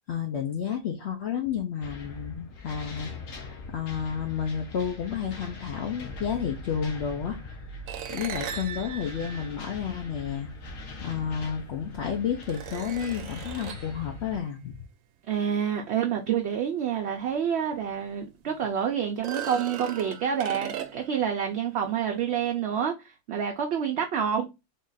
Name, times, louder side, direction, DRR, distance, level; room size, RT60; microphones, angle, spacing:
voice 1, 0.1-7.7 8.1-14.8, left 8 dB, 60° left, 0.9 m, -31 dB
sound 1, 1.8-14.4, left 3 dB, 80° left, 1.2 m, -41 dB
sound 2, 7.9-10.4 11.6-11.7 12.4-14.0 17.3-17.4 17.8-17.9 19.1-21.2, right 9 dB, 85° right, 1.0 m, -38 dB
voice 2, 15.3-24.5, right 8 dB, 65° right, 0.8 m, -28 dB
3.7 x 2.4 x 3.9 m
omnidirectional pair, 1.4 m